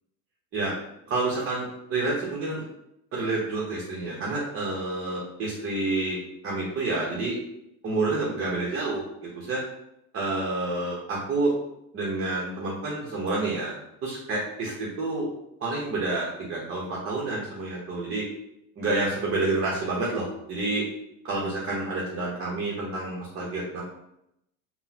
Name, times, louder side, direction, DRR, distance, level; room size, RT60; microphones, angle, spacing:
voice 1, 1.1-2.6 3.1-6.2 6.4-7.4 7.8-9.0 9.3-9.6 10.1-11.5 11.9-13.8 14.0-15.3 15.6-18.3 18.8-20.8 21.2-23.8, right 2 dB, 30° right, -4 dB, 0.9 m, -28 dB
3.8 x 2.2 x 2.8 m, 0.81 s
hypercardioid pair, 95°, 43 cm